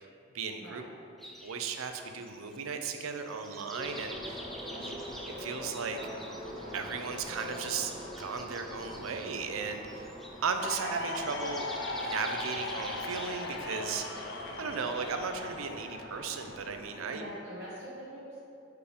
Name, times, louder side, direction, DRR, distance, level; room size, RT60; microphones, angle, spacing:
voice 1, 0.3-0.8 1.4-4.5 4.8-4.9 5.3-6.0 6.7-7.9 8.2-10.1 10.4-11.7 12.0-14.3 14.6-17.2, right 5 dB, 85° right, 6 dB, 0.5 m, -36 dB
sound 1, 1.2-15.7, equal, ahead, 0.4 m, -49 dB
sound 2, 3.7-17.0, equal, 20° right, 1.4 m, -45 dB
sound 3, 10.6-17.1, left 2 dB, 55° left, 0.6 m, -39 dB
voice 2, 17.0-18.4, equal, 55° right, -9 dB, 1.3 m, -44 dB
4.9 x 4.7 x 5.0 m, 2.6 s
head